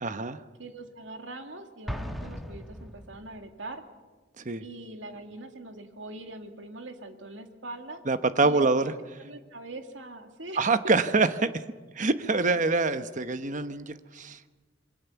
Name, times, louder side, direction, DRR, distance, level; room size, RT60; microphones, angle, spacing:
voice 1, 0.0-0.4 4.4-4.6 8.1-8.9 10.6-11.5 12.0-14.4, right 3 dB, 40° right, 11 dB, 1.0 m, -25 dB
voice 2, 0.6-3.8 4.6-8.0 8.4-8.9 9.2-10.6, right 2 dB, 75° right, 5 dB, 2.3 m, -42 dB
Explosion, 1.9-3.5, equal, ahead, 1.4 m, -37 dB
27.0 x 23.0 x 7.1 m, 1.3 s
head